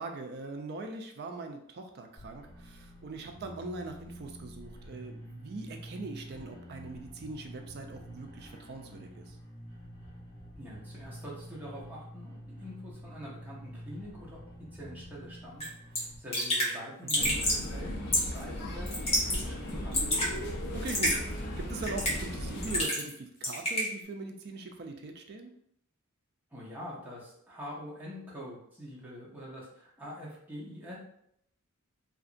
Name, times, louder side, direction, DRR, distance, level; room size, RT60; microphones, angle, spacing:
voice 1, 0.0-9.3 17.2-17.4 20.7-25.5, right 3 dB, 50° right, 4 dB, 0.4 m, -41 dB
sound 1, 2.2-16.2, equal, 30° right, 1.3 m, -48 dB
voice 2, 10.5-14.4 14.7-17.4 17.7-19.9 26.5-31.0, equal, 10° right, -6 dB, 0.7 m, -45 dB
Raindrop / Drip, 15.6-15.7 15.9-16.0 16.3-16.7 17.1-17.6 18.1-18.4 18.9-19.4 19.7-20.3 20.9-21.2 21.8-22.2 22.6-23.1 23.4-23.9, equal, 30° left, 0.9 m, -28 dB
sound 2, 17.2-22.9, left 1 dB, 50° left, 0.5 m, -37 dB
2.8 x 2.5 x 2.5 m, 0.72 s
head